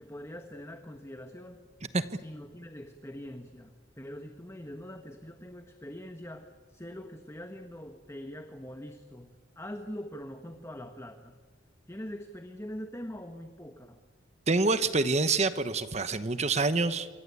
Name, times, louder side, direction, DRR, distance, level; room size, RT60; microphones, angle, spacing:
voice 1, 0.0-1.6 2.1-11.4 11.9-14.0, equal, 15° left, 6 dB, 1.4 m, -43 dB
voice 2, 14.5-17.1, right 3 dB, 35° right, 12 dB, 1.1 m, -26 dB
27.5 x 25.0 x 8.5 m, 1.5 s
head